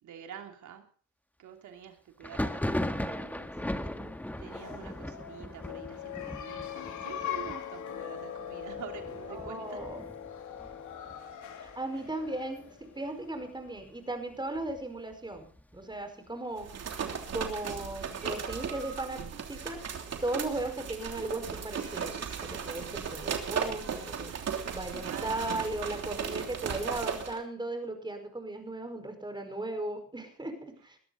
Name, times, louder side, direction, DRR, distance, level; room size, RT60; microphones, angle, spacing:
voice 1, 0.0-0.9 1.4-3.5 3.8-3.9 4.4-9.8 25.0-25.6, right 9 dB, 75° right, 4 dB, 3.1 m, -47 dB
Thunder, 2.2-11.7 12.0-12.7 12.9-13.9 14.3-16.0, left 1 dB, 5° left, 1.7 m, -38 dB
voice 2, 3.5-4.1 9.3-10.0 11.6-15.5 15.7-16.7 17.3-19.8 20.2-24.3 24.7-31.0, right 2 dB, 15° right, 7 dB, 5.0 m, -37 dB
sound 1, 4.3-13.8, left 9 dB, 80° left, 3.0 m, -41 dB
sound 2, 16.6-27.4, right 7 dB, 55° right, 3.2 m, -36 dB
20.5 x 13.0 x 4.1 m, 0.44 s
cardioid pair, 90°, 30 cm